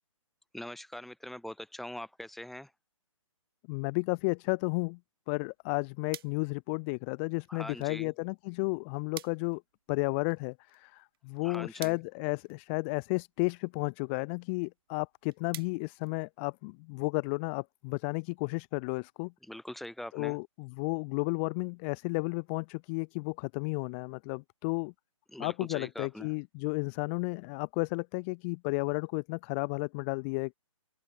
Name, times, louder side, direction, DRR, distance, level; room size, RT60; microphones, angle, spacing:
voice 1, 0.5-2.7 7.5-8.1 11.4-12.0 19.4-20.4 25.3-26.3, left 1 dB, ahead, 2.2 m, -43 dB
voice 2, 3.7-5.0 5.3-9.6 9.9-19.3 20.1-24.9 25.4-30.5, left 32 dB, 20° left, 0.6 m, -33 dB
sound 1, 5.4-16.8, right 13 dB, 40° right, 2.9 m, -53 dB
open air
hypercardioid pair, 145°, 18 cm